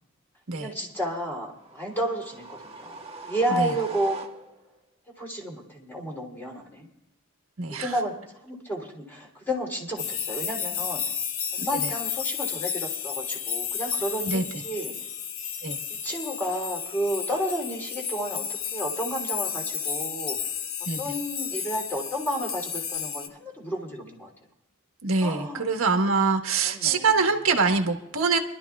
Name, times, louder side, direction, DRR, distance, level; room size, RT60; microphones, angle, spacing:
voice 1, 0.5-4.2 5.2-6.9 7.8-8.2 8.4-11.0 11.5-14.9 15.9-18.4 18.7-20.4 21.0-24.3 25.2-25.7 26.6-27.2, equal, 10° left, -1 dB, 3.1 m, -31 dB
sound 1, 1.6-4.8, right 3 dB, 30° right, 1.6 m, -41 dB
voice 2, 7.6-8.0 11.7-11.8 14.2-14.4 15.6-15.8 20.9-21.1 25.0-28.4, right 4 dB, 80° right, 3 dB, 1.4 m, -24 dB
sound 2, 10.0-23.3, left 8 dB, 80° left, 1.2 m, -32 dB
27.0 x 12.5 x 2.4 m, 0.88 s
head